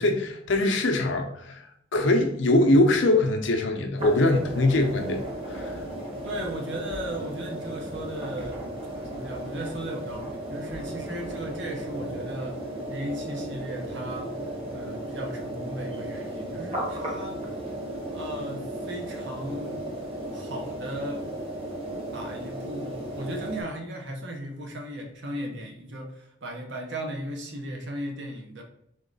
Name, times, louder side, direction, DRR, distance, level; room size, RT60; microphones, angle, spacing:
voice 1, 0.0-5.2 5.5-5.7, left 2 dB, 65° left, 4 dB, 0.6 m, -22 dB
sound 1, 4.0-23.6, right 1 dB, 30° right, 1.1 m, -35 dB
voice 2, 6.2-8.6 9.0-12.6 12.9-17.4 18.1-19.8 20.3-21.3 21.9-28.6, right 1 dB, 65° right, 2 dB, 0.8 m, -36 dB
3.7 x 3.1 x 3.9 m, 0.76 s
head